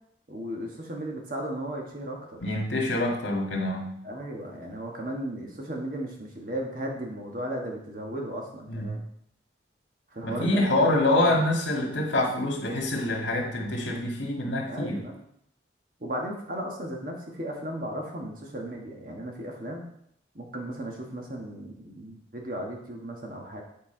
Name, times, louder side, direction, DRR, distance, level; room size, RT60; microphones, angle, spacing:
voice 1, 0.3-2.4 4.0-9.0 10.1-10.9 11.2-11.4 14.7-15.1 16.0-19.9 20.3-23.6, right 1 dB, 45° right, 0 dB, 1.4 m, -35 dB
voice 2, 2.4-3.9 8.7-9.0 10.2-15.0, left 1 dB, 75° left, 0 dB, 1.8 m, -26 dB
8.8 x 4.5 x 4.5 m, 0.73 s
head